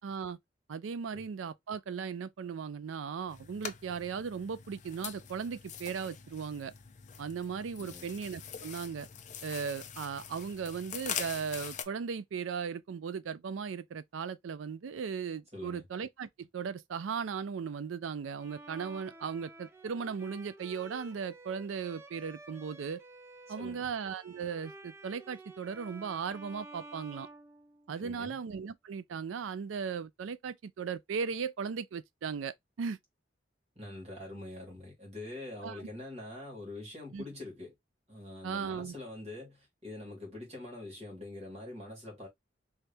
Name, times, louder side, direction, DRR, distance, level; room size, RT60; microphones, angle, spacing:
voice 1, 0.0-0.4 0.7-6.7 7.2-9.1 9.4-23.0 23.5-27.3 27.9-33.0 35.6-35.9 37.1-37.2 38.4-38.9, right 6 dB, 90° right, 0.4 m, -37 dB
sound 1, 3.3-11.8, left 8 dB, 40° left, 0.5 m, -43 dB
voice 2, 15.5-15.8 23.5-23.9 28.0-28.4 33.8-37.7 38.1-42.3, left 2 dB, 35° right, 1.9 m, -44 dB
Bowed string instrument, 18.4-28.2, right 2 dB, 15° right, 0.5 m, -52 dB
3.1 x 2.7 x 3.3 m
head